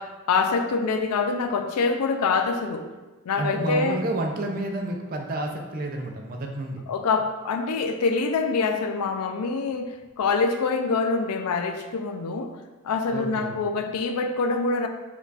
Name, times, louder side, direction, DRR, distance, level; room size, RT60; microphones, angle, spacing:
voice 1, 0.0-2.9 3.3-4.0 6.9-9.9 10.2-12.6 12.8-14.9, left 4 dB, 90° left, 6 dB, 0.4 m, -25 dB
voice 2, 3.4-6.8 13.1-13.5, right 1 dB, 40° right, 2 dB, 0.5 m, -30 dB
4.4 x 2.3 x 4.0 m, 1.2 s
head